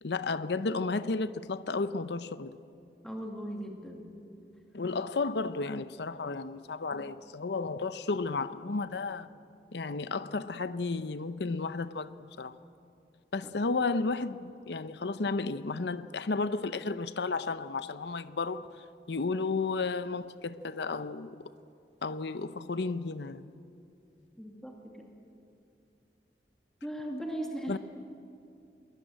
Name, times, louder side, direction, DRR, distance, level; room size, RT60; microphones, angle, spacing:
voice 1, 0.0-2.6 4.7-9.3 9.7-12.6 13.3-21.4 22.0-23.5 27.7-27.8, left 3 dB, 75° left, 0.7 m, -33 dB
voice 2, 3.0-4.1 6.9-7.0 13.4-13.5 24.4-25.1 26.8-27.8, right 1 dB, 5° left, 2.3 m, -38 dB
22.0 x 20.0 x 9.0 m
head